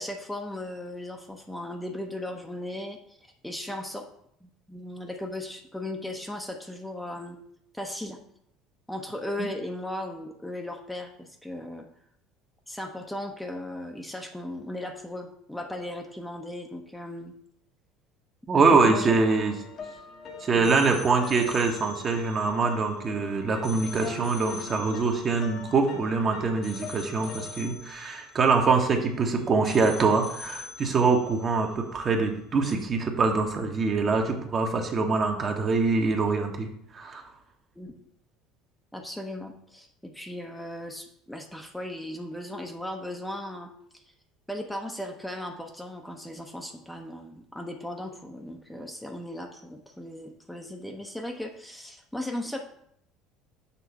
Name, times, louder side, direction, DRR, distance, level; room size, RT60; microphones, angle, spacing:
voice 1, 0.0-4.0 4.4-7.4 7.7-8.2 8.9-11.9 12.7-17.3 18.7-19.1 20.6-20.7 37.8-38.0 38.9-43.7 44.5-52.6, left 1 dB, 5° left, 2 dB, 0.9 m, -37 dB
sound 1, 18.5-29.2 29.6-32.3 32.6-32.8, left 4 dB, 45° left, 1.3 m, -41 dB
voice 2, 18.5-19.6 20.4-37.2, right 4 dB, 35° right, 3 dB, 1.2 m, -24 dB
7.0 x 3.7 x 5.8 m, 0.69 s
figure-of-eight pair, 60°, 0 cm